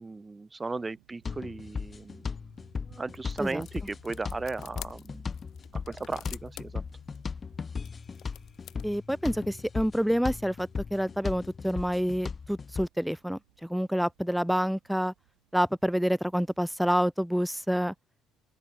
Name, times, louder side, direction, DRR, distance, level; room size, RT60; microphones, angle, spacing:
voice 1, 0.0-2.2 2.8-5.2 5.7-6.8, right 3 dB, 20° right, 1.8 m, -36 dB
sound 1, 0.7-17.1, right 40 dB or more, 85° right, 7.6 m, -65 dB
sound 2, 1.2-12.9, left 5 dB, 35° left, 1.5 m, -38 dB
sound 3, 3.1-8.9, left 12 dB, 60° left, 2.2 m, -50 dB
voice 2, 8.8-15.1 15.5-17.9, equal, ahead, 0.3 m, -28 dB
open air
supercardioid pair, 70°, 0 cm